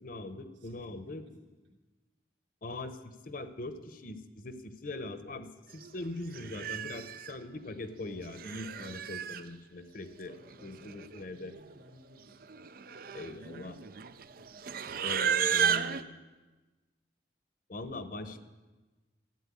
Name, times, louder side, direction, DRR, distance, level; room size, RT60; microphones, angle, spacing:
voice 1, 0.0-1.2 2.6-10.3 10.6-11.6 13.1-13.8 15.0-16.1 17.7-18.5, left 2 dB, 45° left, 10 dB, 0.9 m, -41 dB
voice 2, 0.5-1.3 1.6-1.7 10.3-15.0 18.2-18.4, left 1 dB, 75° right, 1 dB, 3.3 m, -59 dB
Livestock farm animals working animals, 5.8-6.0 6.3-7.3 8.2-9.4 10.5-10.6 10.8-11.2 11.5-11.8 12.4-16.0, right 7 dB, 50° right, 0.5 m, -33 dB
13.5 x 9.0 x 9.8 m, 1.2 s
head